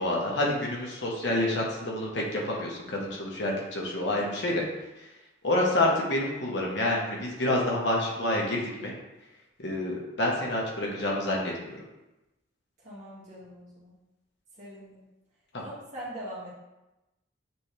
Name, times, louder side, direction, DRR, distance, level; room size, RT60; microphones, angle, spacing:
voice 1, 0.0-4.6 5.4-8.9 9.6-11.8 15.5-15.6, left 1 dB, 60° left, -3 dB, 1.3 m, -28 dB
voice 2, 12.8-13.9 14.6-15.0 15.6-16.5, right 1 dB, 35° right, -8 dB, 2.0 m, -42 dB
8.4 x 3.4 x 3.4 m, 1.0 s
head